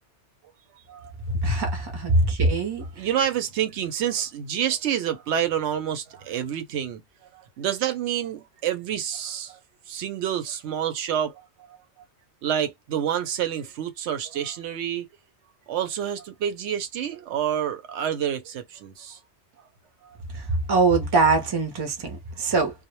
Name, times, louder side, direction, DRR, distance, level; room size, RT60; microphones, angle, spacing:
voice 1, 1.3-2.8 20.3-22.7, right 3 dB, 30° right, 0.5 m, -22 dB
voice 2, 3.0-7.0 7.3-9.6 9.9-11.5 11.7-11.8 12.4-15.1 15.7-19.2 22.4-22.5, right 9 dB, 75° right, 0.9 m, -28 dB
2.1 x 2.1 x 2.9 m
omnidirectional pair, 1.2 m